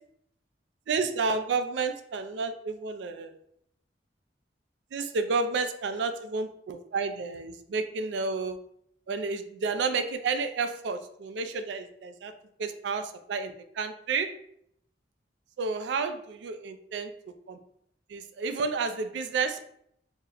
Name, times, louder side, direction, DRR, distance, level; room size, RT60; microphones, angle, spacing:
voice 1, 0.9-3.4 4.9-8.6 9.1-12.3 12.6-14.3 15.6-17.1 18.1-19.6, right 4 dB, 70° right, 9 dB, 0.3 m, -31 dB
2.9 x 2.1 x 3.7 m, 0.71 s
head